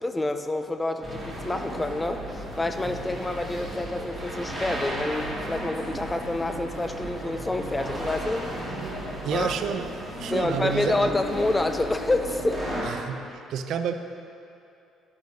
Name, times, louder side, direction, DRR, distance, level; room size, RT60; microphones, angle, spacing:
voice 1, 0.0-8.5 9.3-9.5 10.3-12.6, left 2 dB, 15° left, 7 dB, 0.5 m, -28 dB
sound 1, 1.0-12.8, equal, 5° right, 2.3 m, -35 dB
sound 2, 2.1-9.5, right 7 dB, 20° right, 1.9 m, -48 dB
sound 3, 2.3-11.5, left 1 dB, 50° left, 2.2 m, -50 dB
voice 2, 9.2-9.9 10.2-11.1 12.8-13.9, right 8 dB, 70° right, 8 dB, 0.4 m, -30 dB
10.5 x 9.7 x 2.8 m, 2.6 s
cardioid pair, 105°, 0 cm